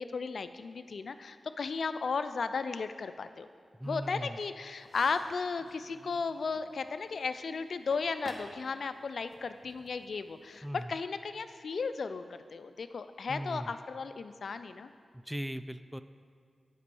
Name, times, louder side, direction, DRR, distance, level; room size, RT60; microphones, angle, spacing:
voice 1, 0.0-3.5 3.9-14.9, left 4 dB, 75° left, 11 dB, 0.3 m, -35 dB
voice 2, 3.8-4.4 10.6-10.9 13.3-13.7 15.3-16.0, equal, ahead, 12 dB, 0.4 m, -38 dB
sound 1, 4.8-10.7, left 1 dB, 15° left, 1.7 m, -53 dB
8.3 x 5.2 x 6.9 m, 2.1 s
cardioid pair, 45°, 0 cm